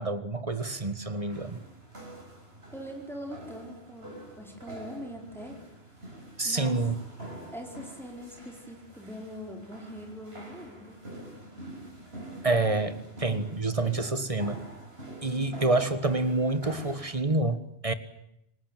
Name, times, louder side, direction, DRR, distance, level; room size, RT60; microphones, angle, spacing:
voice 1, 0.0-1.6 6.4-7.0 12.4-14.6 15.2-17.9, right 2 dB, 30° right, 11 dB, 1.7 m, -28 dB
sound 1, 0.6-17.2, right 1 dB, 60° right, 5.9 m, -46 dB
voice 2, 2.7-5.6 6.4-6.8 7.5-11.0 15.2-15.7, equal, ahead, 1 dB, 4.6 m, -42 dB
27.0 x 18.0 x 9.3 m, 0.80 s
omnidirectional pair, 1.1 m